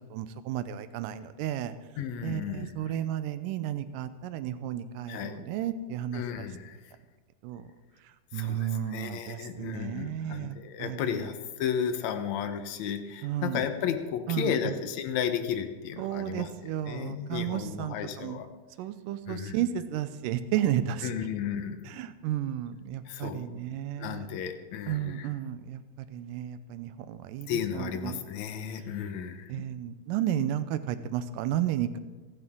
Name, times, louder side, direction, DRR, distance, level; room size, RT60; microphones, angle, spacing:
voice 1, 0.1-1.7 2.2-6.5 7.4-7.7 8.3-11.3 13.2-13.6 14.3-14.7 16.0-18.4 18.8-21.1 21.9-24.3 24.9-28.2 29.5-32.0, right 11 dB, 85° right, 11 dB, 2.3 m, -33 dB
voice 2, 2.0-2.9 5.1-5.5 6.1-6.8 8.3-16.5 16.9-18.5 19.3-19.6 21.0-21.9 23.1-23.6 24.0-25.3 27.5-29.6, left 8 dB, 65° left, 8 dB, 2.2 m, -34 dB
27.0 x 11.0 x 3.7 m, 1.2 s
omnidirectional pair, 3.8 m